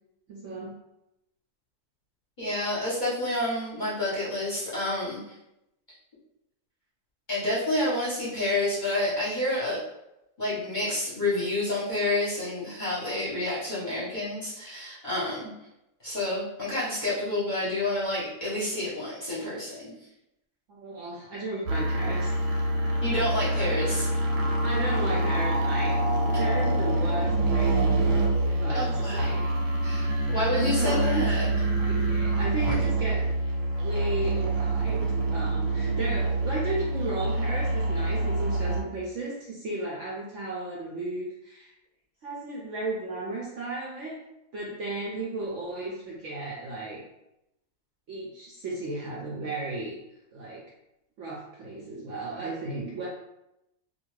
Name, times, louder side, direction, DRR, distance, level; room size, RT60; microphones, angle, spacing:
voice 1, 0.3-0.8 20.7-22.3 22.9-23.0 24.6-26.0 26.2-29.4 30.5-31.2 31.6-33.3 33.8-41.7 42.2-44.2 44.5-47.0 48.1-50.0 50.3-50.6 51.2-53.1, right 2 dB, 65° right, -4 dB, 0.7 m, -34 dB
voice 2, 2.4-5.2 7.3-9.8 10.4-15.5 16.0-19.9 23.0-24.1 28.7-29.4 29.8-31.5, left 1 dB, 40° left, -9 dB, 0.8 m, -29 dB
sound 1, 21.7-38.8, right 2 dB, 85° right, 1.1 m, -26 dB
2.6 x 2.2 x 3.1 m, 0.87 s
omnidirectional pair, 1.7 m